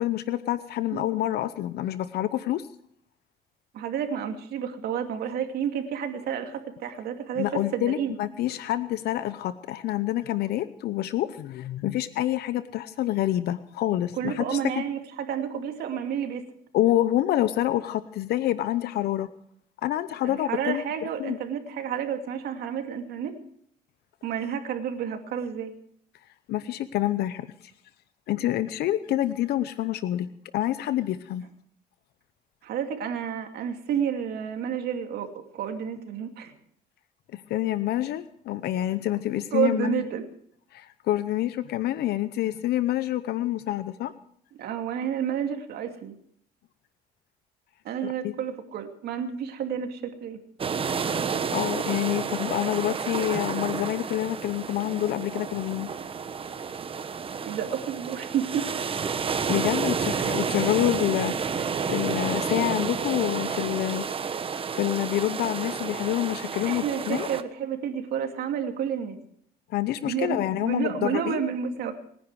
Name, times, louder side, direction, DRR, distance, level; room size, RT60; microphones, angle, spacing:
voice 1, 0.0-2.7 7.4-14.8 16.7-19.3 19.8-20.8 21.2-21.4 26.5-27.5 28.3-30.3 30.5-31.4 37.3-40.0 40.7-44.1 48.2-48.3 51.5-55.9 59.5-64.1 64.7-67.3 69.7-71.4, left 13 dB, 70° left, 14 dB, 0.8 m, -27 dB
voice 2, 3.7-8.2 14.2-16.4 20.2-23.3 24.2-25.7 32.6-36.5 39.5-40.2 44.6-46.2 47.8-50.4 57.5-58.7 66.6-69.2 70.0-71.9, right 8 dB, 70° right, 5 dB, 2.6 m, -30 dB
sound 1, 50.6-67.4, right 6 dB, 35° right, 1.1 m, -30 dB
28.0 x 10.5 x 4.8 m, 0.64 s
cardioid pair, 110°, 17 cm